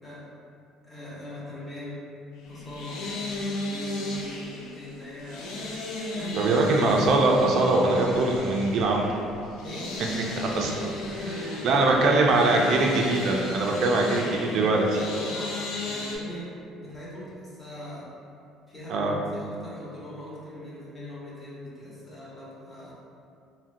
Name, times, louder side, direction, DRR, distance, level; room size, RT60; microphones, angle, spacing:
voice 1, 0.8-2.0 2.5-3.1 3.4-5.5 6.1-6.7 9.6-10.1 10.6-13.0 13.7-18.1 18.7-22.9, equal, 20° left, -8 dB, 0.9 m, -40 dB
sound 1, 2.4-16.2, left 2 dB, 80° left, 0.5 m, -35 dB
voice 2, 6.3-9.2 10.5-10.9 11.6-15.0 18.9-19.1, right 2 dB, 60° right, 0 dB, 0.4 m, -22 dB
3.5 x 2.1 x 2.6 m, 2.5 s
cardioid pair, 110°, 0 cm